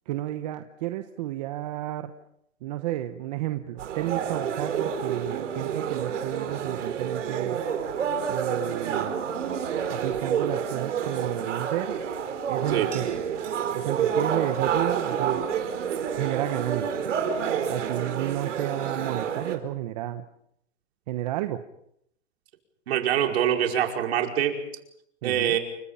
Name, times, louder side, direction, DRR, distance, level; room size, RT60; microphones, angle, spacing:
voice 1, 0.1-2.1 2.6-7.6 8.3-9.1 9.9-11.9 12.5-13.1 13.7-15.4 16.1-17.1 17.7-20.2 21.1-21.6 25.2-25.6, right 14 dB, 35° right, 8 dB, 1.1 m, -31 dB
sound 1, 3.8-19.6, right 7 dB, 75° right, 4.8 m, -29 dB
voice 2, 22.9-24.6 25.2-25.6, right 10 dB, 55° right, 3 dB, 5.2 m, -24 dB
30.0 x 25.0 x 5.7 m, 0.74 s
hypercardioid pair, 165°, 36 cm